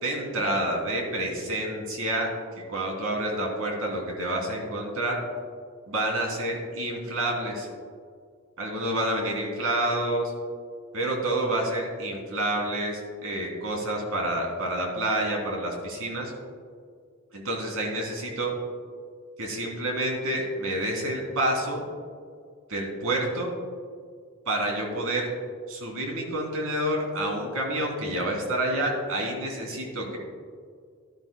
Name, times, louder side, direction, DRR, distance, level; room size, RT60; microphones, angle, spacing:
voice 1, 0.0-2.3 2.7-5.2 5.9-7.7 8.6-10.3 10.9-16.3 17.3-18.5 19.4-21.9 22.7-23.5 24.5-25.3 25.7-30.2, right 1 dB, 70° right, 0 dB, 3.0 m, -28 dB
16.5 x 12.0 x 2.3 m, 2.1 s
head